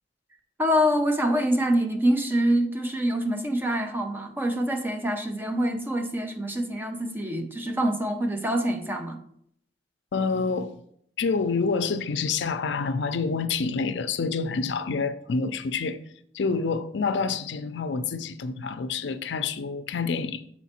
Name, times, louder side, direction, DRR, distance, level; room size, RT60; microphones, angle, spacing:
voice 1, 0.6-9.2, equal, 10° right, 0.7 m, -25 dB
voice 2, 10.1-10.8 11.2-16.0 16.3-20.5, left 4 dB, 80° left, 0.5 m, -27 dB
7.1 x 4.4 x 4.3 m
head